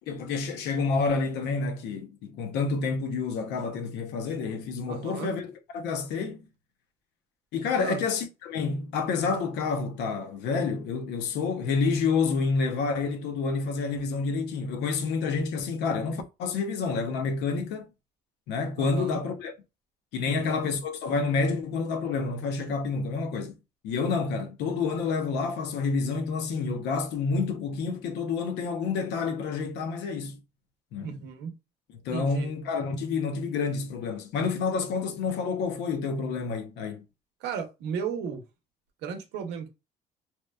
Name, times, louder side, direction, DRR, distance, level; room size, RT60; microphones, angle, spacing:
voice 1, 0.1-6.5 7.5-17.9 18.5-19.5 20.1-23.5 23.8-30.4 30.9-31.2 32.0-37.0, left 4 dB, 85° left, 0.6 m, -29 dB
voice 2, 4.9-5.3 7.7-8.0 18.8-19.2 20.2-20.5 31.0-31.5 32.1-32.5 37.4-38.4 39.0-39.7, right 6 dB, 85° right, 0.7 m, -34 dB
2.9 x 2.1 x 2.2 m
cardioid pair, 110°, 17 cm